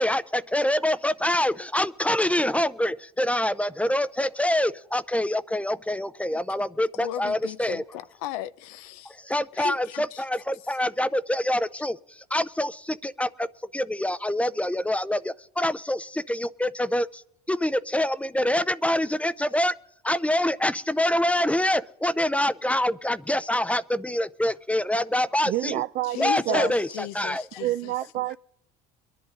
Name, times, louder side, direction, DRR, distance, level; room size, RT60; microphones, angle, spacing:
voice 1, 0.0-7.8 9.1-17.2 17.5-19.7 20.0-25.8 26.2-27.4, left 1 dB, 5° left, 0.5 m, -26 dB
voice 2, 7.0-9.2 9.6-10.2 26.0-27.9, left 14 dB, 85° left, 0.5 m, -35 dB
voice 3, 25.5-26.7 27.6-28.4, right 15 dB, 55° right, 0.4 m, -28 dB
23.0 x 10.5 x 3.8 m
supercardioid pair, 80°, 19 cm